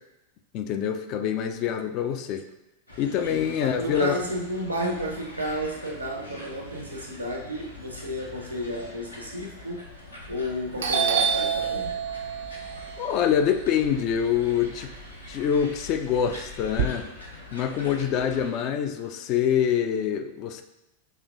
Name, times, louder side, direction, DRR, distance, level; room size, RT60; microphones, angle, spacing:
voice 1, 0.5-2.4 3.0-4.2 13.0-14.9 15.3-17.1 17.5-20.6, left 8 dB, 40° left, 7 dB, 0.4 m, -25 dB
sound 1, 2.9-18.5, left 2 dB, 85° left, 0.8 m, -44 dB
voice 2, 3.2-9.9 10.3-12.0, equal, 85° right, -1 dB, 0.8 m, -32 dB
Doorbell, 10.2-10.5 10.8-14.9 15.3-16.8, right 7 dB, 65° right, 0.5 m, -28 dB
6.2 x 3.1 x 2.6 m, 0.91 s
figure-of-eight pair, 90°, 0 cm